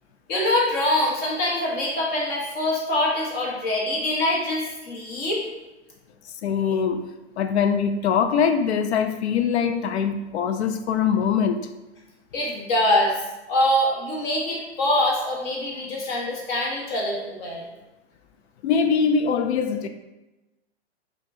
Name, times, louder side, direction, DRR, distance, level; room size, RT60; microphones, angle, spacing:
voice 1, 0.3-5.4 12.3-13.2 13.5-17.6, left 1 dB, 30° left, 1.0 m, -24 dB
voice 2, 6.4-7.1 7.4-11.7 18.6-19.9, left 6 dB, 80° left, 0.5 m, -22 dB
4.5 x 2.3 x 2.6 m
hypercardioid pair, 130°, 33 cm